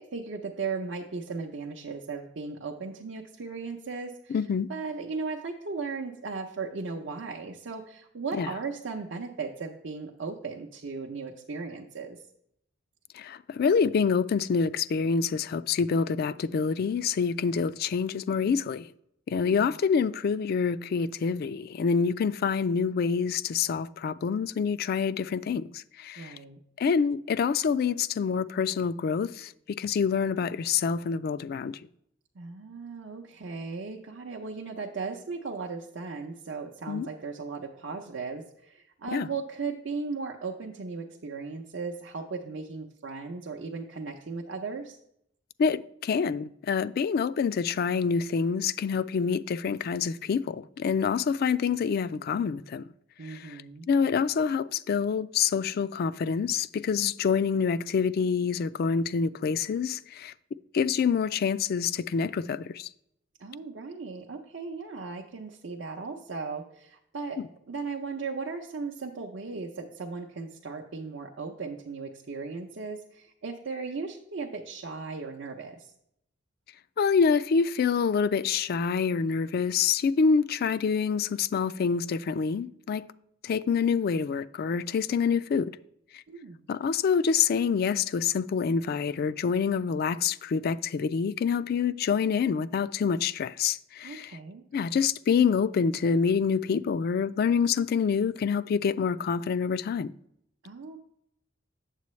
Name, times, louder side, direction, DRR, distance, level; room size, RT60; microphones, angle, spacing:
voice 1, 0.0-4.4 4.7-12.2 19.3-19.7 26.2-26.6 32.4-45.0 53.2-53.9 63.4-67.4 67.7-75.9 86.3-86.7 94.0-94.6 100.6-101.0, right 4 dB, 65° right, 0.6 m, -37 dB
voice 2, 4.3-4.7 8.3-8.5 13.1-18.9 19.3-26.3 26.8-29.5 29.8-31.8 36.9-37.1 39.1-39.3 45.6-52.8 53.3-53.6 53.9-60.3 60.7-62.9 77.0-83.1 83.4-85.7 86.1-86.2 86.7-94.3 94.7-100.1, left 6 dB, 50° left, 0.3 m, -26 dB
8.2 x 7.5 x 3.1 m
head